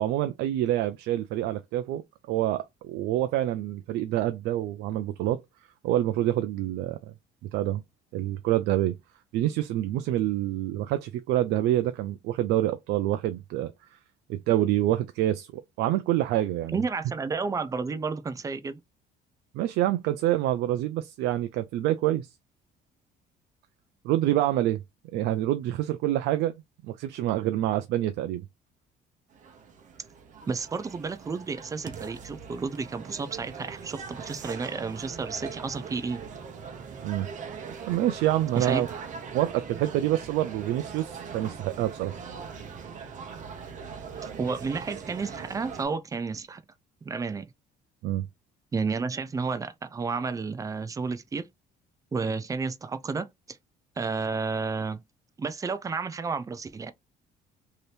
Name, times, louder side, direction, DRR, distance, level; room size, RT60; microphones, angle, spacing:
voice 1, 0.0-2.0 2.3-5.4 5.8-7.0 7.5-7.8 8.1-9.0 9.3-13.7 14.3-16.8 19.5-22.3 24.0-24.8 25.1-26.5 26.8-28.4 37.0-37.3 37.9-38.9 39.3-42.2 48.0-48.2, right 13 dB, 80° right, 0.4 m, -27 dB
voice 2, 16.7-18.8 30.5-36.2 38.6-38.9 44.4-46.6 47.0-47.5 48.7-51.5 52.1-53.6 54.0-55.0 55.4-56.9, right 4 dB, 20° right, 0.4 m, -31 dB
sound 1, 29.3-45.9, right 6 dB, 50° right, 0.8 m, -41 dB
2.8 x 2.6 x 3.2 m
cardioid pair, 110°, 17 cm